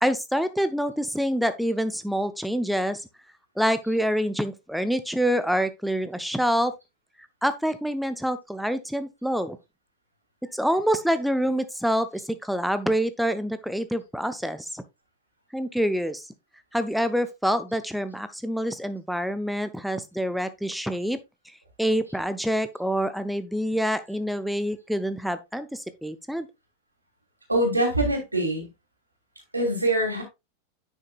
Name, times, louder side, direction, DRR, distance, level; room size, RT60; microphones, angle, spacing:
voice 1, 0.0-3.0 3.6-6.7 7.4-9.6 10.5-14.8 15.5-16.2 16.7-21.2 21.8-26.5, equal, ahead, 0.5 m, -26 dB
voice 2, 27.5-28.7 29.5-30.2, right 1 dB, 85° right, 3.0 m, -24 dB
9.7 x 6.3 x 2.4 m
figure-of-eight pair, 90°, 0 cm